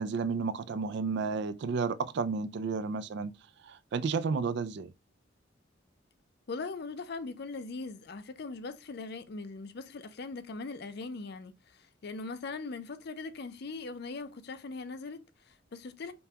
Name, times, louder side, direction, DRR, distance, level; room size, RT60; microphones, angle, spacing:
voice 1, 0.0-3.3 3.6-4.9, right 5 dB, 65° right, 0.4 m, -32 dB
voice 2, 6.5-16.1, left 3 dB, 60° left, 0.5 m, -40 dB
5.3 x 2.3 x 2.8 m
head